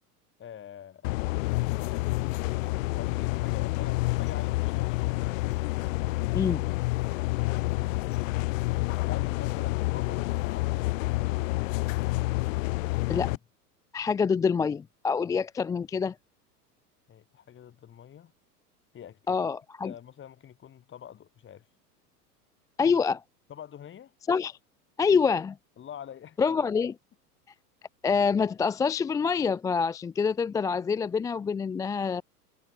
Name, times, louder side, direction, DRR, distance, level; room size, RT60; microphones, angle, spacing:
voice 1, 0.4-5.2 9.0-10.8 17.1-18.3 18.9-19.5 19.8-21.6 23.5-24.1 25.8-26.4, left 9 dB, 25° left, 3.0 m, -46 dB
sound 1, 1.0-13.4, left 21 dB, 55° left, 1.9 m, -28 dB
voice 2, 13.9-16.1 19.3-19.9 22.8-23.2 24.3-24.6 25.0-25.6 26.4-27.0 28.0-32.2, left 5 dB, 10° left, 0.4 m, -26 dB
figure-of-eight pair, 90°, 47 cm